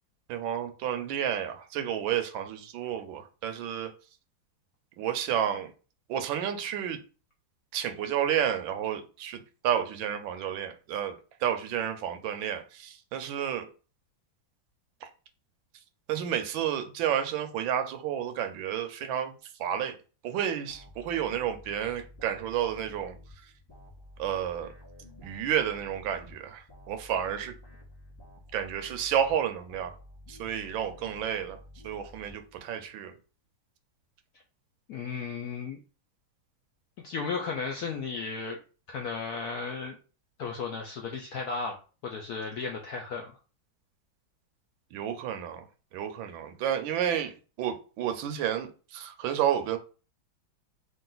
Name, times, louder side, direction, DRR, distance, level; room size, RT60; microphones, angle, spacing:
voice 1, 0.3-3.9 5.0-5.7 6.1-7.0 7.7-13.7 15.0-15.1 16.1-20.0 20.2-23.2 23.4-23.5 24.2-24.7 25.2-27.5 28.5-30.0 30.3-33.1 44.9-45.7 45.9-49.8, right 9 dB, 80° right, 1.3 m, -31 dB
sound 1, 20.7-32.9, left 1 dB, 25° left, 0.5 m, -51 dB
voice 2, 34.9-35.8 37.0-38.6 38.9-40.0 40.4-43.3, left 5 dB, 75° left, 0.8 m, -34 dB
3.8 x 2.4 x 3.8 m
omnidirectional pair, 2.2 m